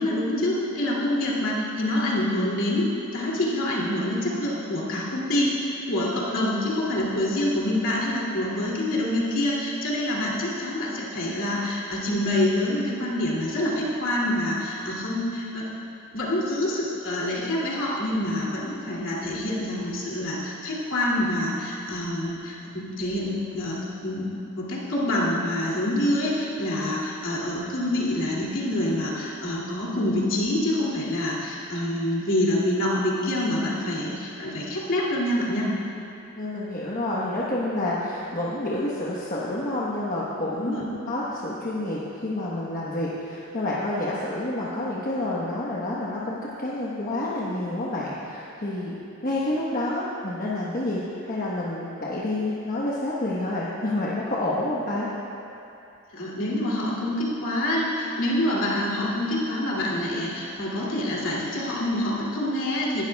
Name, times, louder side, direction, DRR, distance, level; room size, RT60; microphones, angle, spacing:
voice 1, 0.0-15.6 16.1-35.7 40.6-40.9 56.1-63.0, left 1 dB, 65° left, -5 dB, 2.6 m, -26 dB
voice 2, 36.4-49.0 49.2-55.1, left 1 dB, 45° left, -7 dB, 1.2 m, -29 dB
18.5 x 12.5 x 2.3 m, 2.8 s
head